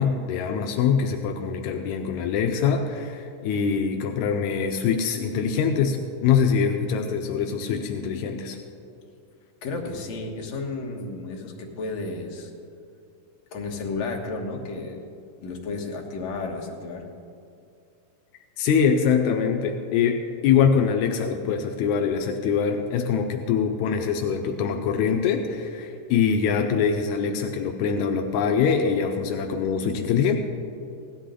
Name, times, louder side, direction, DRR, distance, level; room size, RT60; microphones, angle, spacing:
voice 1, 0.0-8.6 18.6-30.4, left 6 dB, 80° left, 3 dB, 1.7 m, -23 dB
voice 2, 9.6-12.5 13.5-15.1 15.4-17.0, left 3 dB, 60° left, 0 dB, 2.3 m, -32 dB
16.5 x 12.0 x 3.8 m, 2.6 s
omnidirectional pair, 4.0 m